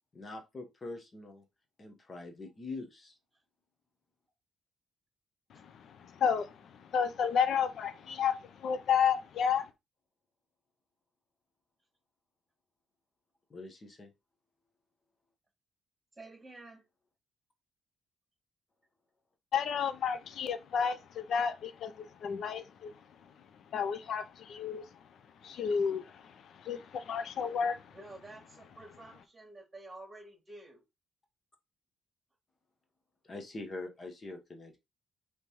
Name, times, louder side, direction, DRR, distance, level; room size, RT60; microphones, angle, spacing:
voice 1, 0.1-1.4 1.8-3.1 13.5-14.1 33.2-34.8, left 2 dB, 35° left, 1.1 m, -44 dB
voice 2, 6.0-9.7 19.5-21.9 22.2-22.9 23.7-24.9 25.4-27.9, left 7 dB, 65° left, 0.6 m, -31 dB
voice 3, 16.2-16.8 27.9-30.8, right 2 dB, 15° right, 2.8 m, -50 dB
5.2 x 3.2 x 3.0 m
cardioid pair, 90°, 0 cm